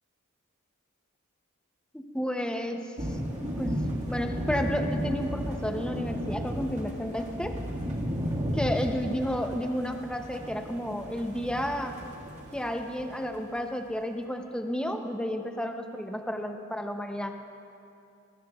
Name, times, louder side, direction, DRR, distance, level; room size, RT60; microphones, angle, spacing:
voice 1, 1.9-2.9 3.4-7.6 8.6-12.0 12.5-17.4, equal, 5° left, 5 dB, 0.6 m, -32 dB
sound 1, 3.0-13.1, equal, 30° right, 1.8 m, -34 dB
22.5 x 13.0 x 2.3 m, 2.6 s
head